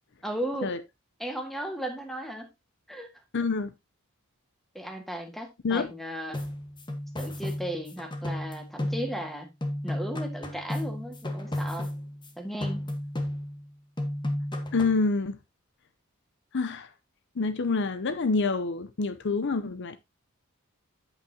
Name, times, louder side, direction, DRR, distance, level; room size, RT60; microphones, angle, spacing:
voice 1, 0.2-0.8 1.2-2.5 2.9-3.1 4.7-6.4 7.2-9.5 9.8-11.9 12.4-12.9, right 1 dB, ahead, 1.7 m, -35 dB
voice 2, 3.3-3.7 5.6-5.9 14.7-15.4 16.5-16.9 17.4-20.0, left 4 dB, 55° left, 0.6 m, -27 dB
sound 1, 6.3-9.3 9.6-12.3 12.6-13.7 14.0-15.1, left 1 dB, 20° left, 1.3 m, -33 dB
8.8 x 8.1 x 2.8 m
head